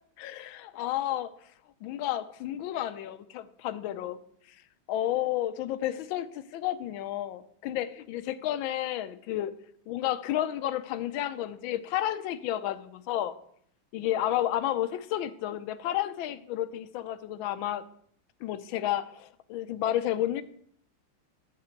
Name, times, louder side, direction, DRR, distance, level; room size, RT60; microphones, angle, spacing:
voice 1, 0.2-1.3 1.8-4.2 4.9-9.5 9.9-13.3 13.9-17.8 18.4-20.4, left 12 dB, 75° left, 13 dB, 1.4 m, -31 dB
12.5 x 7.6 x 4.5 m, 0.66 s
omnidirectional pair, 2.3 m